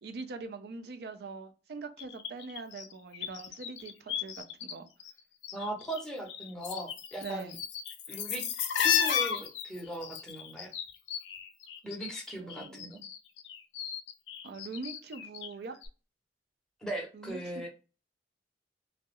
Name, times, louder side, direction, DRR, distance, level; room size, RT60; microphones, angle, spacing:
voice 1, 0.0-4.9 7.2-7.6 12.4-13.1 14.4-15.8 17.1-17.7, right 3 dB, 65° right, 0.4 m, -43 dB
sound 1, 2.0-4.7 5.0-6.0 6.3-12.2 12.5-15.5 15.8-15.9, left 8 dB, 85° left, 0.4 m, -34 dB
voice 2, 5.5-7.5 8.1-8.5 8.8-10.7 11.8-13.0 16.8-17.7, right 1 dB, 5° left, 0.7 m, -39 dB
2.3 x 2.0 x 2.9 m
head